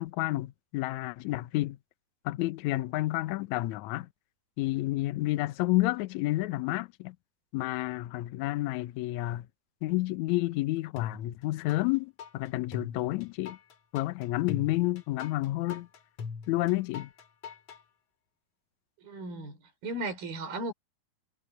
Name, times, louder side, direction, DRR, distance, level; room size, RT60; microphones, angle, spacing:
voice 1, 0.0-1.8 2.2-4.1 4.6-7.1 7.5-9.5 9.8-13.6 13.9-15.9 16.5-17.1, left 18 dB, 80° left, 1.7 m, -30 dB
sound 1, 11.0-11.8 12.2-17.8, left 5 dB, 50° left, 2.7 m, -41 dB
voice 2, 19.0-19.6 19.8-20.7, right 2 dB, 70° right, 6.4 m, -35 dB
omnidirectional pair, 4.3 m